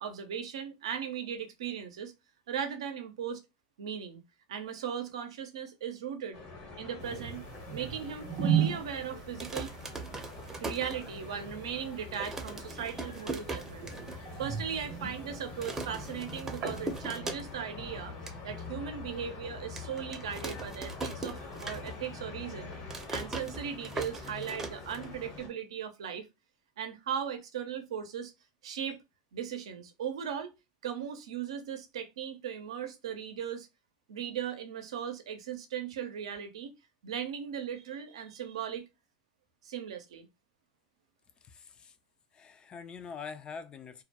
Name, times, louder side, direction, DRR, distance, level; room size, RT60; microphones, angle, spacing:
voice 1, 0.0-2.1 2.5-3.4 3.8-4.2 4.5-6.4 6.8-7.4 7.7-9.7 10.6-13.9 14.2-22.7 23.1-26.3 26.8-28.3 28.6-29.0 29.3-30.5 30.8-33.7 34.1-36.8 37.0-38.9 39.6-40.3, right 8 dB, 90° right, 0.6 m, -38 dB
sound 1, 6.3-25.5, left 4 dB, 60° left, 1.1 m, -45 dB
sound 2, 7.0-17.1, right 9 dB, 50° right, 0.7 m, -37 dB
sound 3, 9.4-11.5 11.8-11.9 12.1-14.2 14.5-14.6 14.8-15.2 15.6-17.8 18.0-18.4 18.9-19.0 19.8-22.2 22.5-25.4, right 3 dB, 15° right, 0.6 m, -40 dB
voice 2, 41.4-41.9 42.3-44.0, left 5 dB, 30° left, 0.4 m, -44 dB
2.3 x 2.1 x 2.8 m
hypercardioid pair, 100°, 3 cm